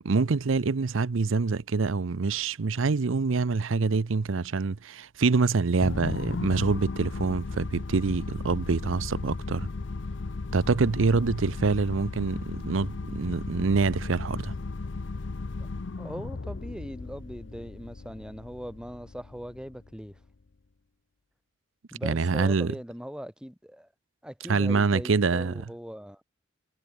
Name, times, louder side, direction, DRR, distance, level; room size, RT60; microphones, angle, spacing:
voice 1, 0.0-9.7 10.5-14.5 22.0-22.7 24.5-25.5, right 4 dB, 80° right, 0.6 m, -26 dB
sound 1, 5.8-20.3, left 3 dB, 65° left, 0.7 m, -35 dB
voice 2, 16.0-20.2 21.9-23.9 24.2-26.2, equal, 5° right, 2.6 m, -40 dB
head